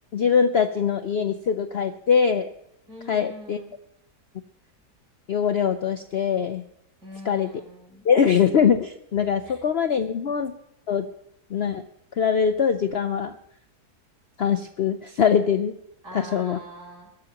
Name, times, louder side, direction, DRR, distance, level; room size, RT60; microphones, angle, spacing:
voice 1, 0.1-2.5 3.1-3.6 5.3-6.6 7.2-7.5 8.0-10.5 10.9-11.1 11.5-11.8 12.2-13.3 14.4-15.8 16.1-16.6, left 7 dB, 70° left, 9 dB, 0.6 m, -22 dB
voice 2, 2.9-3.7 7.0-8.0 9.4-9.5 16.0-17.1, equal, 85° right, -2 dB, 6.4 m, -42 dB
21.5 x 13.5 x 2.9 m, 0.79 s
omnidirectional pair, 1.8 m